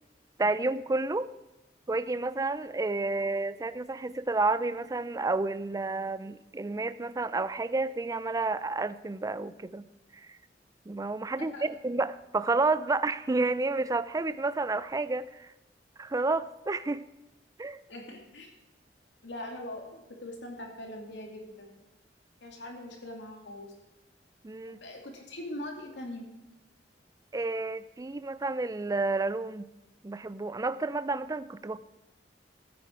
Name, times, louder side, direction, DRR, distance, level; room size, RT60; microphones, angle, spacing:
voice 1, 0.4-1.3 1.9-9.9 10.1-10.4 10.9-15.5 16.0-17.0 17.6-17.8 24.4-24.8 27.3-29.7 30.0-31.8, right 3 dB, 20° right, 15 dB, 0.4 m, -30 dB
voice 2, 17.9-18.5 19.2-21.7 22.4-23.7 24.6-26.3, left 1 dB, 90° left, 1 dB, 2.7 m, -42 dB
15.0 x 9.5 x 4.6 m, 1.0 s
head